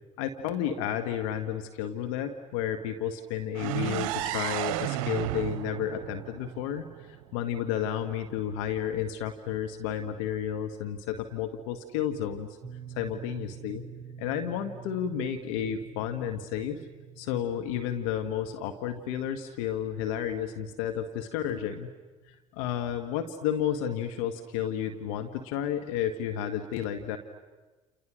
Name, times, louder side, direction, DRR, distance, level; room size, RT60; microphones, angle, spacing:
voice 1, 0.2-12.5 12.9-13.8 14.2-16.8 17.2-21.9 22.3-27.2, left 9 dB, 70° left, 7 dB, 1.7 m, -32 dB
sound 1, 3.5-7.4, right 15 dB, 70° right, 0.8 m, -33 dB
sound 2, 12.6-22.5, right 8 dB, 20° right, 2.6 m, -48 dB
30.0 x 29.5 x 6.4 m, 1.2 s
hypercardioid pair, 65°, 18 cm